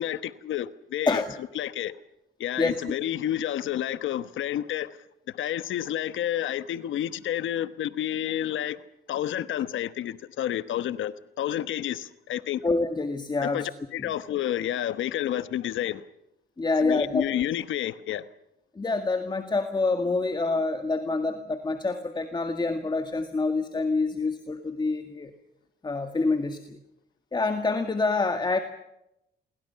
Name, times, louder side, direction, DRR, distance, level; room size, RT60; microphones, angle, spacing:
voice 1, 0.0-1.2 1.5-1.9 2.4-5.0 5.3-8.8 9.1-12.6 13.4-16.0 16.8-18.2, left 11 dB, 75° left, 1.2 m, -30 dB
voice 2, 2.6-3.0 12.6-13.7 14.0-14.1 16.6-17.3 18.8-25.3 25.8-26.8 27.3-28.6, left 3 dB, 20° left, 2.0 m, -27 dB
28.5 x 22.5 x 5.8 m
cardioid pair, 90°, 20 cm